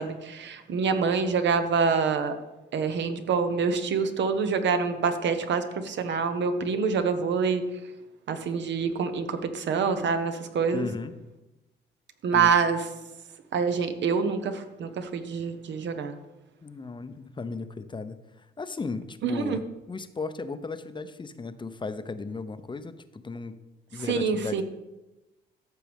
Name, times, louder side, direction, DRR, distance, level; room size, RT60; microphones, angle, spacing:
voice 1, 0.0-2.3 2.7-7.6 8.3-10.9 12.2-12.8 13.5-16.1 19.2-19.6 24.1-24.6, right 5 dB, 65° right, 8 dB, 1.0 m, -26 dB
voice 2, 10.7-11.1 12.3-12.5 16.6-23.6 23.9-24.6, left 4 dB, 25° left, 11 dB, 0.7 m, -36 dB
14.0 x 6.1 x 3.5 m, 1.0 s
cardioid pair, 90°, 20 cm